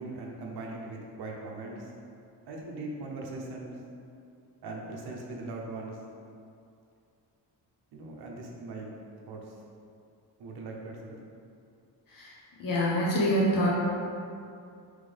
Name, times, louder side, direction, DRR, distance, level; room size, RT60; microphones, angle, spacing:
voice 1, 0.0-1.9 2.5-3.8 4.6-6.0 7.9-8.9 9.3-9.5 10.4-11.1, right 2 dB, 65° right, -1 dB, 0.8 m, -40 dB
voice 2, 12.6-13.7, equal, 50° left, -6 dB, 0.9 m, -25 dB
3.6 x 3.3 x 3.5 m, 2.5 s
cardioid pair, 130°, 42 cm